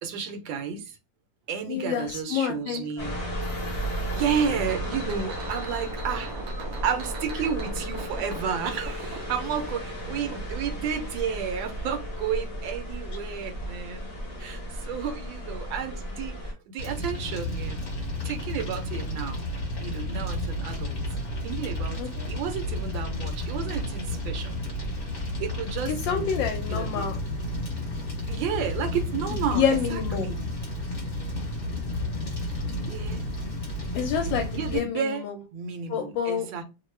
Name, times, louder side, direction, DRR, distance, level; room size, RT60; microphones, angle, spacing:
voice 1, 0.0-1.0 1.5-3.3 4.1-6.3 6.8-14.1 14.4-17.8 18.2-19.5 19.8-21.0 21.4-24.6 25.4-26.3 26.7-27.1 28.3-30.4 32.9-33.3 34.5-35.2 35.5-36.6, right 7 dB, 80° right, 1.3 m, -32 dB
voice 2, 1.7-3.1 22.0-22.3 25.9-27.2 29.3-30.3 33.9-35.4 35.9-36.5, left 7 dB, 75° left, 1.2 m, -28 dB
sound 1, 3.0-16.5, equal, 60° left, 0.4 m, -34 dB
sound 2, 3.4-10.4, right 3 dB, 65° right, 1.0 m, -41 dB
Fire, 16.8-34.8, left 1 dB, 40° left, 0.8 m, -32 dB
3.1 x 2.1 x 3.1 m
omnidirectional pair, 2.1 m